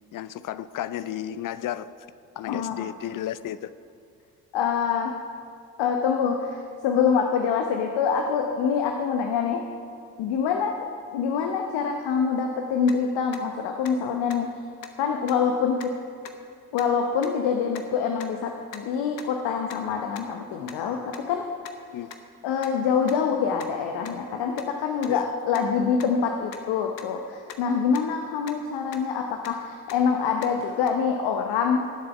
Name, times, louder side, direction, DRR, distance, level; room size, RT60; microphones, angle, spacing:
voice 1, 0.1-1.9 2.4-3.7 21.9-22.1 25.1-25.3 30.6-30.8, left 11 dB, 45° left, 15 dB, 0.7 m, -33 dB
voice 2, 2.5-2.8 4.5-5.1 5.8-9.6 10.2-10.7 11.1-14.5 15.0-15.9 16.7-21.4 22.4-31.8, left 6 dB, 60° left, 3 dB, 1.1 m, -25 dB
sound 1, 12.4-12.5 12.9-13.0 13.3-13.4 13.8-13.9 14.3-14.4 14.8-14.9 15.3-15.4 15.8-15.9 16.2-16.3 16.7-16.8 17.2-17.3 17.7-17.8 18.2-18.3 18.7-18.8 19.2-19.3 19.7-19.8 20.1-20.2 20.7-20.8 21.1-21.2 21.6-21.7 22.1-22.2 22.6-22.7 23.1-23.2 23.6-23.7 24.0-24.1 24.5-24.6 25.0-25.1 25.5-25.6 26.0-26.1 26.5-26.6 27.0-27.1 27.5-27.6 27.9-28.0 28.4-28.5 28.9-29.0 29.4-29.5 29.9-30.0 30.4-30.5 30.9-31.0, left 8 dB, 85° left, 0.8 m, -41 dB
19.0 x 7.7 x 5.9 m, 2.3 s
figure-of-eight pair, 45°, 48 cm